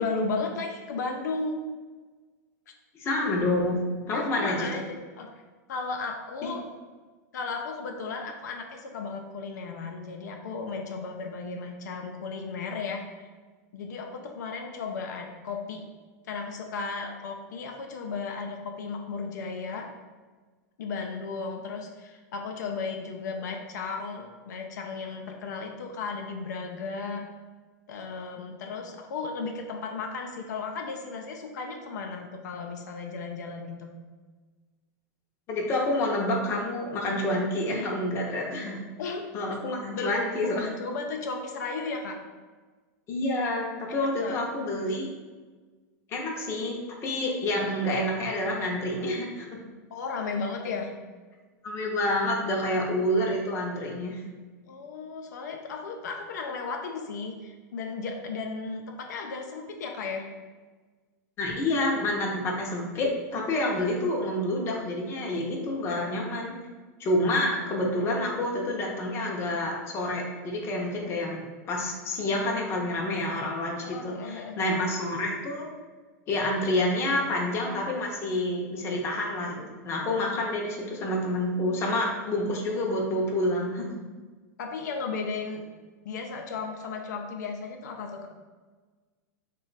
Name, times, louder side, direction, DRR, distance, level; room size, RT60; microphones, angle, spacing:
voice 1, 0.0-1.6 4.1-5.3 5.7-6.6 7.3-13.3 13.7-15.8 16.3-19.9 20.8-27.3 27.9-33.9 39.0-39.3 39.9-40.1 40.4-42.2 43.9-44.4 44.9-45.0 46.1-46.5 49.9-50.9 54.7-60.3 73.8-74.8 84.6-85.6 86.0-88.3, left 4 dB, 90° left, 3 dB, 0.4 m, -35 dB
voice 2, 3.0-3.8 4.1-4.8 35.5-38.8 39.3-40.7 43.1-45.1 46.1-49.6 51.6-54.2 61.4-66.6 67.0-75.7 76.3-84.0, left 1 dB, 25° left, -1 dB, 0.6 m, -28 dB
3.1 x 2.2 x 3.9 m, 1.4 s
supercardioid pair, 140°, 9 cm